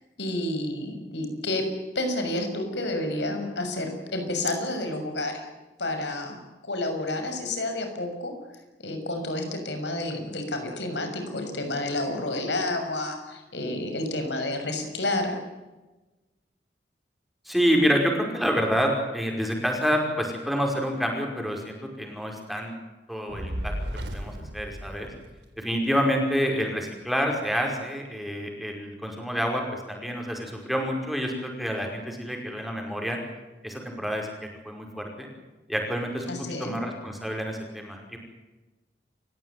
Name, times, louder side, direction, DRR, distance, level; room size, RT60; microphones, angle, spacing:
voice 1, 0.2-1.7 1.9-5.5 5.8-6.4 6.6-8.3 8.8-15.4 36.3-36.8, left 2 dB, 90° left, 5 dB, 6.6 m, -30 dB
voice 2, 17.5-22.7 23.1-23.7 24.1-25.1 25.6-33.2 33.6-34.3 34.6-35.3 35.7-38.2, equal, ahead, 1 dB, 5.3 m, -28 dB
Fire, 23.3-25.7, equal, 80° right, 3.5 m, -34 dB
29.0 x 16.0 x 9.3 m, 1.1 s
head